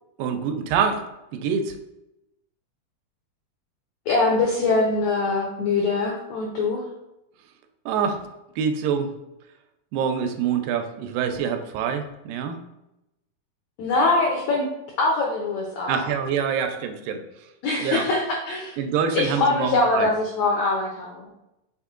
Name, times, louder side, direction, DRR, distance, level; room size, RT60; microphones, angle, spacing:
voice 1, 0.2-1.1 1.3-1.8 7.9-8.2 8.6-9.1 9.9-12.6 15.9-17.2 17.8-18.1 18.8-20.1, right 7 dB, 85° right, 6 dB, 2.2 m, -25 dB
voice 2, 4.1-6.9 13.8-14.7 15.0-16.0 17.6-18.8 19.1-21.2, left 3 dB, 90° left, -1 dB, 1.5 m, -23 dB
5.7 x 3.6 x 2.4 m, 0.91 s
omnidirectional pair, 3.9 m